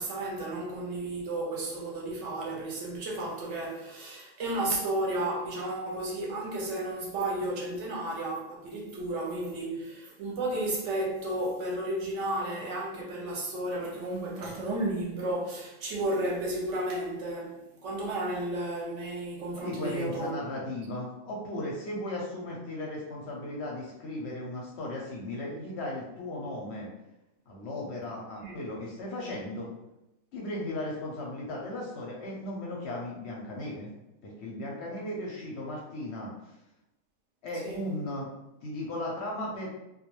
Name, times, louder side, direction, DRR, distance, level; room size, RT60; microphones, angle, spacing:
voice 1, 0.0-20.3 28.4-28.6 37.6-37.8, right 1 dB, 65° right, 0.8 m, -33 dB
voice 2, 19.6-26.9 27.5-29.7 30.3-33.9 34.2-36.3 37.4-38.3 38.6-39.7, left 1 dB, 65° left, 0.7 m, -36 dB
2.2 x 2.2 x 3.0 m
omnidirectional pair, 1.4 m